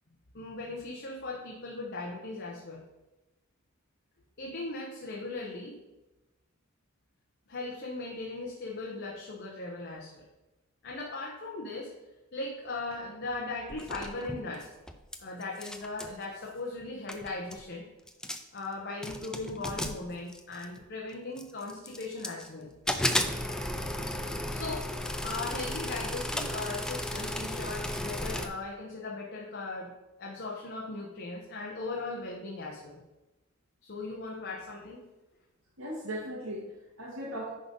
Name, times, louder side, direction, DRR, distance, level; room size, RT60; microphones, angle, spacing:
voice 1, 0.3-2.8 4.4-5.7 7.5-10.2 10.8-11.9 12.3-14.7 15.2-17.9 18.5-22.7 24.5-33.0 33.8-35.0, left 3 dB, 50° left, -2 dB, 1.1 m, -38 dB
sound 1, 13.7-15.2 15.4-16.2 16.8-16.9 17.1-17.6 18.1-18.6 19.0-20.8 21.4-22.5 22.9-28.5, left 1 dB, 5° left, 0.4 m, -34 dB
voice 2, 35.8-37.5, equal, 70° right, -6 dB, 1.6 m, -38 dB
10.0 x 3.9 x 5.4 m, 1.0 s
head